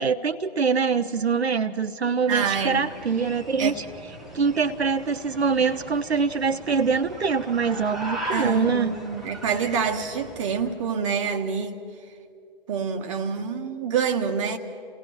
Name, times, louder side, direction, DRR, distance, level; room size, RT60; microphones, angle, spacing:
voice 1, 0.0-3.8 4.3-8.9, right 5 dB, 75° right, 0.8 m, -24 dB
sound 1, 2.2-10.8, right 1 dB, ahead, 0.7 m, -39 dB
voice 2, 2.3-2.8 3.6-3.8 8.3-11.8 12.7-14.6, right 6 dB, 30° right, 1.3 m, -26 dB
29.5 x 18.0 x 5.7 m
figure-of-eight pair, 140°, 32 cm